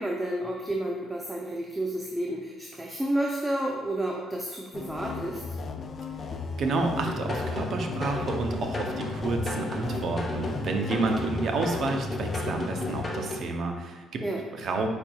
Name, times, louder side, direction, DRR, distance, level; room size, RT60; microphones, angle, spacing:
voice 1, 0.0-5.4 11.0-11.3 14.2-14.4, right 1 dB, 10° right, -1 dB, 0.5 m, -31 dB
sound 1, 4.7-13.0, left 4 dB, 45° left, 0.4 m, -36 dB
voice 2, 6.6-14.2 14.6-14.9, right 3 dB, 60° right, 4 dB, 0.6 m, -30 dB
sound 2, 7.0-13.4, left 1 dB, 25° left, 0.9 m, -34 dB
5.0 x 4.2 x 2.3 m, 1.2 s
supercardioid pair, 80°, 0 cm